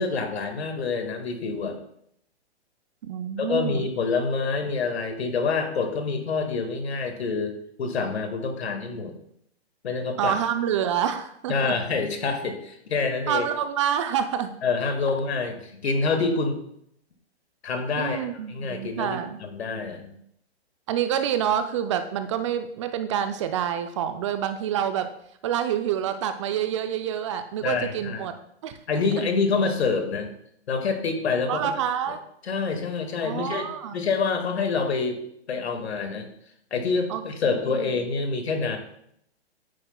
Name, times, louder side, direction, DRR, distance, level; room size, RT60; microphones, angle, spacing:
voice 1, 0.0-1.8 3.4-9.2 9.8-10.4 11.5-13.5 14.6-16.6 17.6-20.1 27.6-28.3 28.9-30.3 30.7-31.7 32.4-35.2 35.5-36.3 36.7-38.8, left 4 dB, 75° left, 6 dB, 1.8 m, -27 dB
voice 2, 3.0-3.9 10.2-11.8 13.3-14.6 18.0-19.4 20.9-25.1 25.4-28.3 28.6-28.8 29.2-29.3 31.5-32.2 33.2-34.0 37.1-38.0, right 9 dB, 30° right, 9 dB, 0.4 m, -27 dB
9.8 x 9.2 x 2.3 m, 0.72 s
hypercardioid pair, 130°, 33 cm